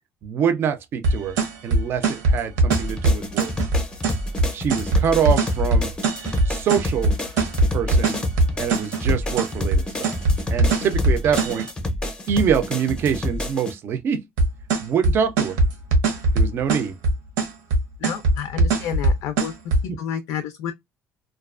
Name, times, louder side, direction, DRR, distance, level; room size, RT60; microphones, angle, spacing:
voice 1, 0.2-1.4 1.6-3.5 4.5-6.0 6.5-7.1 7.7-8.2 8.6-10.2 10.5-11.7 12.3-14.3 14.8-15.6 16.3-16.9 19.9-20.0, right 7 dB, 40° right, 0.4 m, -24 dB
sound 1, 1.0-11.7 14.4-19.8, right 2 dB, 85° right, 0.7 m, -20 dB
sound 2, 2.7-13.7, left 1 dB, 15° left, 0.5 m, -29 dB
voice 2, 18.0-19.5 20.0-20.7, left 9 dB, 75° left, 0.4 m, -30 dB
2.3 x 2.2 x 2.3 m
cardioid pair, 145°, 6 cm